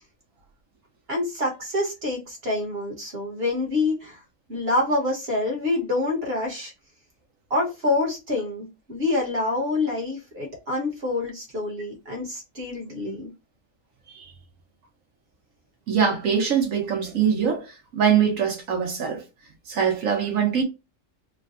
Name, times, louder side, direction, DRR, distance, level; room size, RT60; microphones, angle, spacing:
voice 1, 1.1-4.2 4.5-6.7 7.5-13.3, left 2 dB, 50° right, 1.5 m, -26 dB
voice 2, 15.9-17.6 17.9-19.2 19.7-20.6, right 7 dB, 90° right, 1.4 m, -22 dB
3.8 x 2.2 x 2.6 m
omnidirectional pair, 1.3 m